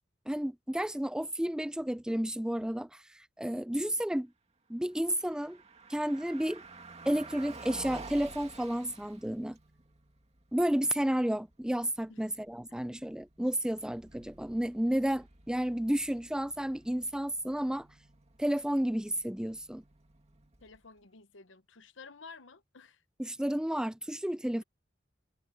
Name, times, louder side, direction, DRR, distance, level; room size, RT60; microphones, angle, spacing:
voice 1, 0.3-4.3 4.7-5.6 5.9-6.6 7.1-9.6 10.5-17.9 18.4-19.8 23.2-24.6, right 1 dB, 5° right, 0.5 m, -31 dB
Car passing by, 4.9-21.0, right 3 dB, 35° right, 2.2 m, -52 dB
voice 2, 20.6-23.0, left 4 dB, 85° left, 1.1 m, -52 dB
head